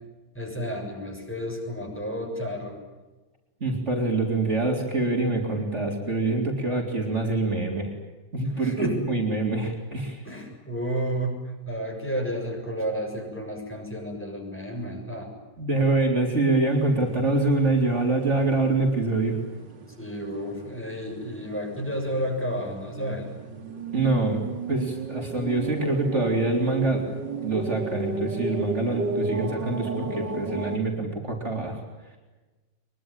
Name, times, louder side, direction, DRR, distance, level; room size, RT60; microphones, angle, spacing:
voice 1, 0.4-2.8 8.5-9.2 10.2-11.4 11.7-15.3 20.0-23.3, equal, 5° left, 1 dB, 6.9 m, -31 dB
voice 2, 3.6-7.9 8.3-10.2 15.6-19.4 23.9-24.4 24.7-27.0 27.4-31.8, right 2 dB, 40° right, 1 dB, 4.1 m, -25 dB
sound 1, 16.7-30.8, right 4 dB, 85° right, 2.9 m, -35 dB
23.5 x 23.0 x 9.1 m, 1.2 s
omnidirectional pair, 1.9 m